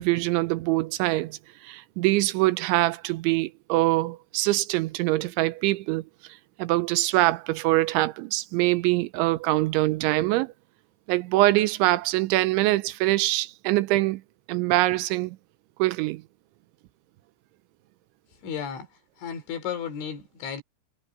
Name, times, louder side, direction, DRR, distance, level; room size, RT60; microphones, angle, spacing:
voice 1, 0.0-1.4 1.6-6.0 6.6-10.5 11.1-14.2 14.5-15.4 15.8-16.2, right 18 dB, 90° right, 3.2 m, -24 dB
voice 2, 18.4-18.9 19.2-20.6, left 7 dB, 85° left, 6.2 m, -33 dB
omnidirectional pair, 5.3 m